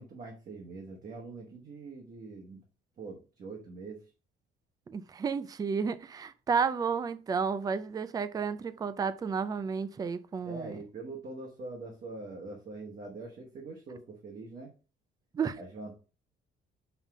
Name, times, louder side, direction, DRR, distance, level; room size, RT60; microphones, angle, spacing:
voice 1, 0.0-2.6 3.0-4.0 10.4-14.7 15.6-16.0, right 3 dB, 40° right, 1.3 m, -43 dB
voice 2, 4.9-10.7 15.3-15.6, right 6 dB, 20° right, 0.3 m, -32 dB
5.7 x 3.6 x 5.9 m
cardioid pair, 160°, 21 cm